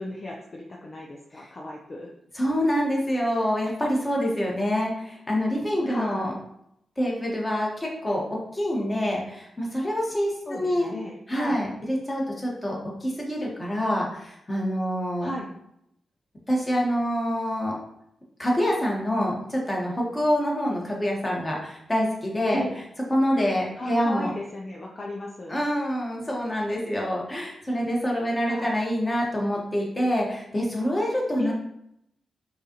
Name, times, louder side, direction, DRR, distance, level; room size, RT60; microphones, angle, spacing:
voice 1, 0.0-2.1 5.8-6.3 10.5-11.7 15.2-15.5 22.5-22.7 23.8-25.6 28.4-28.7 31.4-31.5, left 1 dB, 40° left, -1 dB, 0.6 m, -35 dB
voice 2, 2.3-6.3 7.0-10.9 11.3-15.3 16.5-17.8 18.4-22.6 23.1-24.3 25.5-31.5, equal, 20° left, -2 dB, 1.4 m, -26 dB
5.3 x 2.5 x 2.9 m, 0.78 s
cardioid pair, 60°, 0 cm